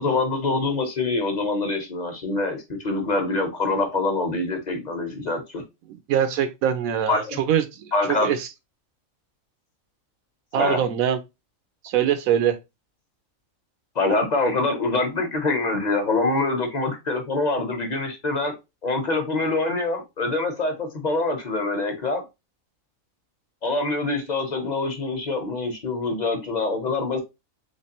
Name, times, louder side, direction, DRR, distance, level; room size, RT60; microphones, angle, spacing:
voice 1, 0.0-5.6 7.1-7.4 7.9-8.3 10.5-10.8 13.9-18.5 18.8-22.2 23.6-27.2, left 3 dB, 40° left, 0.7 m, -25 dB
voice 2, 6.1-7.6 8.1-8.4 10.5-11.2 11.8-12.6, right 9 dB, 85° right, 1.0 m, -22 dB
3.3 x 3.2 x 2.8 m
omnidirectional pair, 1.4 m